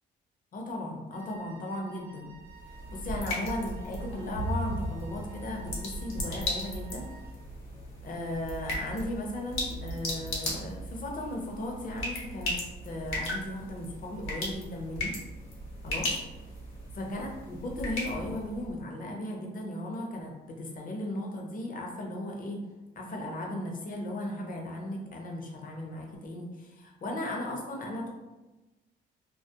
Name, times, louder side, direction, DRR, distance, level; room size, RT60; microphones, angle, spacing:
voice 1, 0.5-2.4 2.9-7.1 8.0-12.6 12.8-15.2 15.8-16.1 17.0-22.6 23.0-28.1, left 1 dB, 45° left, 1 dB, 0.6 m, -36 dB
Wind instrument woodwind instrument, 1.1-7.5, right 5 dB, 80° right, 0.5 m, -54 dB
sound 1, 2.3-18.8, left 1 dB, 75° left, 0.8 m, -36 dB
2.3 x 2.1 x 2.7 m, 1.1 s
cardioid pair, 90°, 20 cm